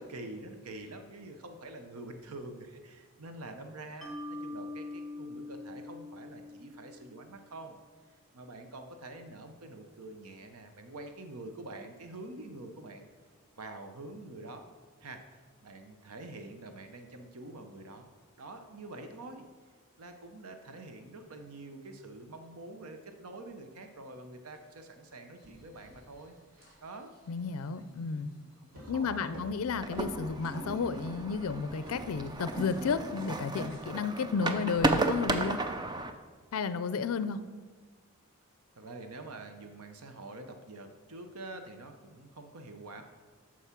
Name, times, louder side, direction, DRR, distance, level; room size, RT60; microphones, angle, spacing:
voice 1, 0.0-7.8 8.3-13.0 13.6-14.7 15.0-18.1 18.4-19.4 20.0-26.4 26.8-27.2 27.6-29.4 38.8-43.0, right 2 dB, 80° right, 6 dB, 0.8 m, -46 dB
Mallet percussion, 4.0-7.3, left 2 dB, 5° left, 1.3 m, -43 dB
sound 1, 24.5-24.6 25.2-33.8, equal, 60° right, 3.1 m, -52 dB
voice 2, 27.3-28.3 28.9-35.6 36.5-37.4, left 5 dB, 70° left, 13 dB, 0.4 m, -32 dB
sound 2, 29.8-36.1, right 2 dB, 20° right, 0.4 m, -34 dB
8.2 x 6.2 x 5.8 m, 1.5 s
head